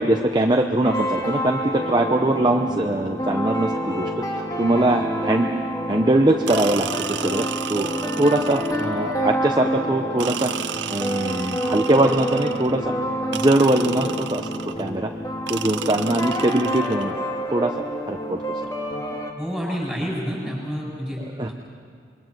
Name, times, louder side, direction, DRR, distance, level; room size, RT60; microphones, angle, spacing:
voice 1, 0.0-4.2 4.6-5.5 5.9-7.9 8.2-10.5 10.9-12.9 13.3-14.5 14.8-15.1 15.5-17.1 17.5-17.7 18.1-18.4 21.2-21.5, right 1 dB, 20° right, 3 dB, 0.7 m, -21 dB
sound 1, 0.8-19.3, equal, 20° left, 1.8 m, -28 dB
sound 2, 6.5-9.0 10.2-12.8 13.3-14.9 15.5-17.1, right 9 dB, 65° right, 0.6 m, -33 dB
voice 2, 19.4-21.5, equal, ahead, -4 dB, 7.2 m, -29 dB
27.0 x 22.5 x 6.1 m, 2.2 s
head